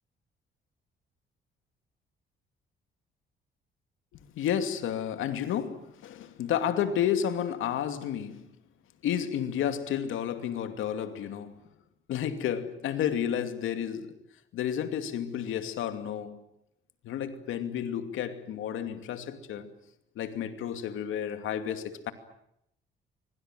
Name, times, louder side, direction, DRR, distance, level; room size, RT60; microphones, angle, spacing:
voice 1, 4.3-8.4 9.0-11.6 12.1-14.2 14.5-16.4 17.0-19.7 20.2-22.1, left 9 dB, 85° left, 2.6 m, -31 dB
25.0 x 23.5 x 9.1 m
cardioid pair, 90°, 20 cm